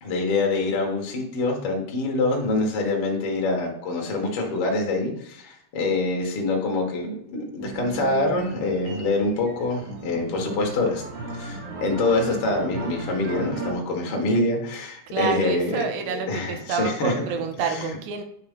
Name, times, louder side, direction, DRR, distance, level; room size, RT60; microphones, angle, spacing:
voice 1, 0.0-11.0 11.3-15.8 16.0-17.1 17.6-17.9, left 2 dB, 60° left, 1 dB, 1.6 m, -25 dB
sound 1, 7.6-13.8, right 3 dB, 55° right, 2.5 m, -36 dB
voice 2, 15.1-18.2, right 7 dB, 85° right, 5 dB, 3.0 m, -28 dB
9.2 x 6.5 x 3.7 m, 0.71 s
omnidirectional pair, 5.0 m